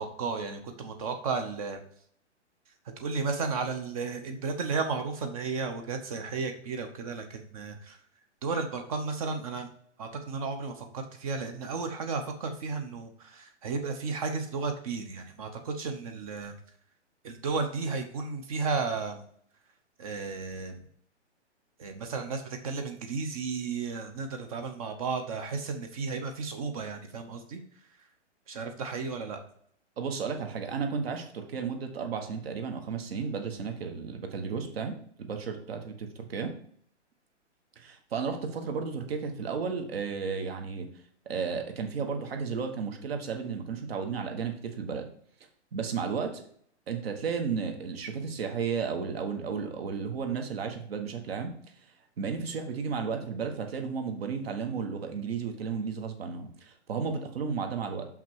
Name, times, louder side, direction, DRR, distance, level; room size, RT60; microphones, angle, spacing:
voice 1, 0.0-1.8 3.0-8.0 8.4-9.7 10.0-16.5 17.2-19.3 20.0-20.8 21.8-27.6 28.5-29.4, right 4 dB, 30° right, 6 dB, 0.8 m, -33 dB
voice 2, 30.0-36.5 37.8-40.9 41.2-45.1 45.7-46.4 46.9-51.5 52.2-58.1, right 5 dB, 55° right, 6 dB, 1.5 m, -33 dB
5.9 x 5.8 x 4.6 m, 0.62 s
hypercardioid pair, 155°, 35 cm